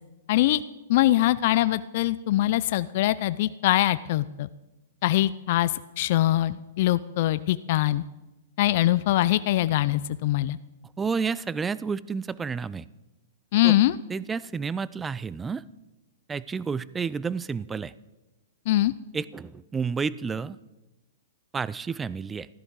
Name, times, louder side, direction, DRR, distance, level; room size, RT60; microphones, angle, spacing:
voice 1, 0.3-0.6 0.9-4.5 5.0-5.7 6.0-8.0 8.6-10.6 13.5-13.9 18.7-18.9, left 15 dB, 55° left, 15 dB, 0.4 m, -23 dB
voice 2, 11.0-12.9 13.6-13.8 14.1-15.6 16.3-17.9 19.1-20.6 21.5-22.5, right 5 dB, 15° right, 19 dB, 0.4 m, -30 dB
14.5 x 12.5 x 4.7 m, 1.0 s
hypercardioid pair, 140°, 0 cm